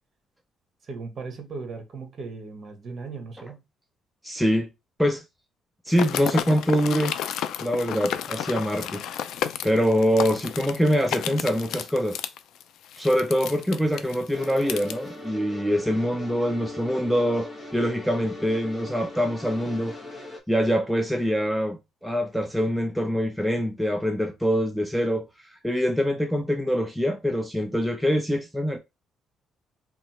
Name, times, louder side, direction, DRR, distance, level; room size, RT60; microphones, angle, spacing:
voice 1, 0.9-3.6, right 4 dB, 40° right, 1.0 m, -37 dB
voice 2, 4.2-4.7 5.0-5.2 5.8-7.2 7.6-9.0 9.6-12.2 13.0-20.0 20.5-25.3 25.6-28.8, equal, ahead, 0.4 m, -24 dB
sound 1, 5.9-14.9, left 10 dB, 75° left, 0.3 m, -32 dB
sound 2, 14.3-20.4, left 2 dB, 15° left, 1.1 m, -39 dB
2.9 x 2.3 x 4.1 m
cardioid pair, 125°, 0 cm